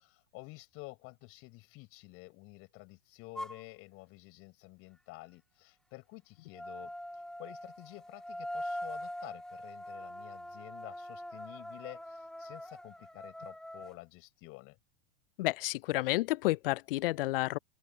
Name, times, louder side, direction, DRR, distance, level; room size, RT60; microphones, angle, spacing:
voice 1, 0.0-6.9 7.4-14.8, left 25 dB, 50° left, 7.2 m, -50 dB
sound 1, 3.4-3.6 6.5-14.0, left 1 dB, ahead, 0.8 m, -43 dB
voice 2, 15.4-17.6, left 19 dB, 70° left, 0.4 m, -30 dB
open air
hypercardioid pair, 110°, 29 cm